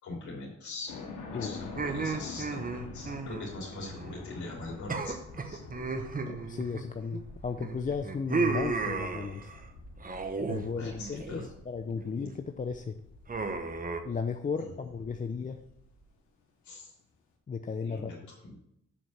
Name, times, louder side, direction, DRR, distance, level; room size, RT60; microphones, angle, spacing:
voice 1, 0.0-0.9 1.3-5.6 5.9-6.1 10.8-11.5 14.6-14.9 16.6-16.9 17.8-18.5, left 3 dB, 70° left, -4 dB, 3.1 m, -42 dB
sound 1, 0.9-16.0, left 3 dB, 90° left, 2.1 m, -46 dB
sound 2, 1.8-4.2 4.4-4.6 4.9-7.2 7.6-9.6 10.0-10.7 11.0-11.5 11.9-12.3 13.3-14.0, right 4 dB, 30° right, 1.1 m, -34 dB
voice 2, 6.2-9.5 10.5-11.4 11.7-13.0 14.0-15.6 17.5-18.1, left 5 dB, 25° left, 6 dB, 0.6 m, -35 dB
7.3 x 5.2 x 6.5 m, 0.76 s
cardioid pair, 90°, 30 cm